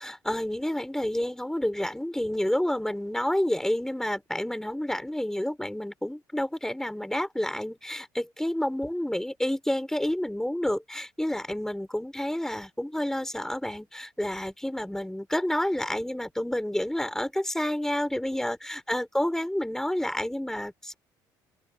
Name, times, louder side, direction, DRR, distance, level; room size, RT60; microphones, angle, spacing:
voice 1, 0.0-20.9, left 1 dB, 5° left, 4.8 m, -29 dB
open air
supercardioid pair, 70°, 10 cm